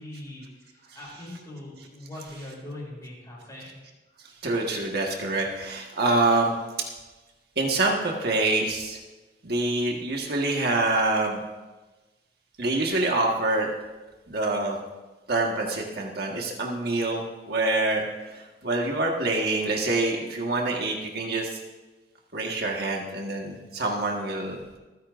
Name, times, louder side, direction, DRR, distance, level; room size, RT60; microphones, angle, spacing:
voice 1, 0.0-3.7, left 1 dB, 20° left, -4 dB, 5.3 m, -41 dB
voice 2, 4.4-6.5 7.6-9.0 9.4-11.4 12.6-13.7 14.3-14.8 15.3-21.6 22.3-24.6, right 2 dB, 60° right, 0 dB, 1.5 m, -26 dB
27.5 x 10.0 x 2.6 m, 1.2 s
head